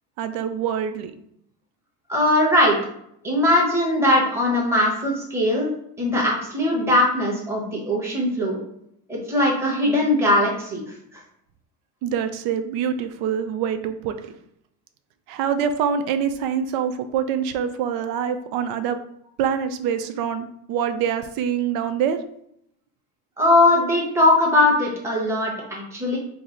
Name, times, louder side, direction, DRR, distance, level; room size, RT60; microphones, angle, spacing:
voice 1, 0.2-1.1 12.0-14.3 15.3-19.0 19.4-22.2, right 8 dB, 90° right, 9 dB, 0.5 m, -25 dB
voice 2, 2.1-2.8 3.2-5.7 6.0-8.6 9.1-10.8 23.4-26.2, left 1 dB, 5° right, -3 dB, 1.0 m, -20 dB
4.6 x 2.0 x 3.8 m, 0.73 s
cardioid pair, 165°, 37 cm